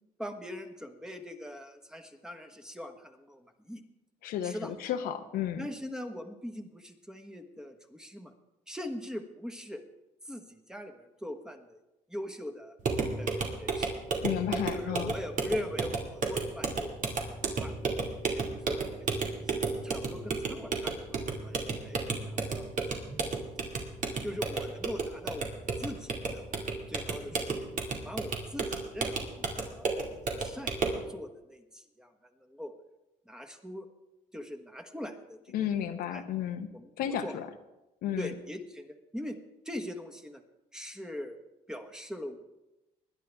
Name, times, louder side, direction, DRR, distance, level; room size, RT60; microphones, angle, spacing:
voice 1, 0.2-3.8 4.4-4.7 5.6-8.3 8.7-9.8 10.3-11.8 12.1-12.7 13.2-13.9 14.7-17.7 18.2-22.8 24.2-26.4 26.9-27.7 28.0-29.9 30.2-32.1 32.4-32.7 33.3-33.9 34.3-35.7 36.1-36.2 36.7-36.9 37.2-37.4 38.2-39.4 39.6-40.4 40.7-41.4 41.7-42.4, left 1 dB, 5° right, 5 dB, 1.3 m, -41 dB
voice 2, 4.2-5.7 14.2-15.1 35.5-36.7 37.0-37.5 38.0-38.3, left 10 dB, 85° left, 7 dB, 0.9 m, -33 dB
sound 1, 12.8-31.0, right 4 dB, 60° right, 2.3 m, -33 dB
20.0 x 10.5 x 3.5 m, 0.98 s
cardioid pair, 95°, 15 cm